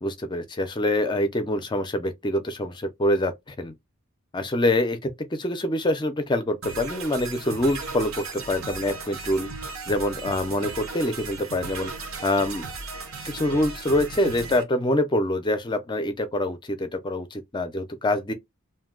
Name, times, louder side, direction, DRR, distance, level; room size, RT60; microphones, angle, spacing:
voice 1, 0.0-3.7 4.3-12.6 13.2-18.3, left 1 dB, 20° left, 0.5 m, -25 dB
sound 1, 6.6-14.6, right 4 dB, 65° right, 0.8 m, -36 dB
2.6 x 2.1 x 3.6 m
head